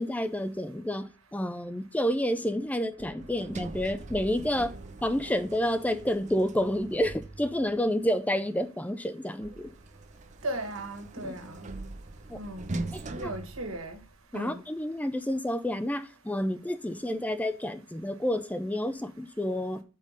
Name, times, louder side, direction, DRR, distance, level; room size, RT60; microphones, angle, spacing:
voice 1, 0.0-4.8 5.0-9.7 11.2-11.4 12.3-12.4 12.9-13.3 14.3-19.8, equal, 5° left, 0.5 m, -29 dB
Sliding door, 3.0-7.8 9.4-14.4, right 2 dB, 35° right, 0.6 m, -42 dB
voice 2, 10.4-11.7 12.3-12.7 13.1-14.0 14.3-14.6, right 1 dB, 80° right, 1.9 m, -36 dB
5.4 x 5.1 x 6.6 m
head